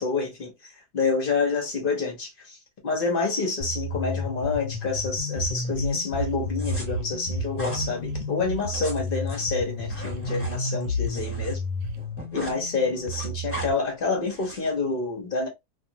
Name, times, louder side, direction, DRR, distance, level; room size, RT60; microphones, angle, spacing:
voice 1, 0.0-2.6 2.8-11.7 12.3-15.5, left 4 dB, 45° left, 0.8 m, -28 dB
sound 1, 3.6-13.7, left 2 dB, 70° left, 1.0 m, -32 dB
sound 2, 4.9-6.3 6.6-8.6 9.8-10.6 10.8-11.1 11.4-11.6 11.8-12.0, right 5 dB, 75° right, 1.0 m, -34 dB
sound 3, 6.5-6.8 7.5-7.8 8.6-11.5 11.8-12.6 12.9-13.7 14.2-14.7, equal, 10° left, 0.8 m, -38 dB
2.6 x 2.5 x 2.7 m
omnidirectional pair, 1.7 m